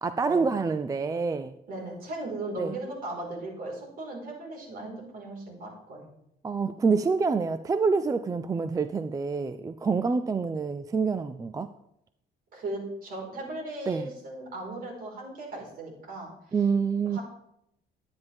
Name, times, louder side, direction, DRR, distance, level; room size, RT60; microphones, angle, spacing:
voice 1, 0.0-1.5 2.6-2.7 6.4-11.7 13.9-14.1 16.5-17.2, right 5 dB, 20° right, 11 dB, 0.4 m, -27 dB
voice 2, 1.7-6.1 12.5-16.3 17.1-17.2, right 2 dB, 60° right, -1 dB, 4.6 m, -37 dB
12.0 x 9.6 x 3.5 m, 0.77 s
cardioid pair, 110°, 17 cm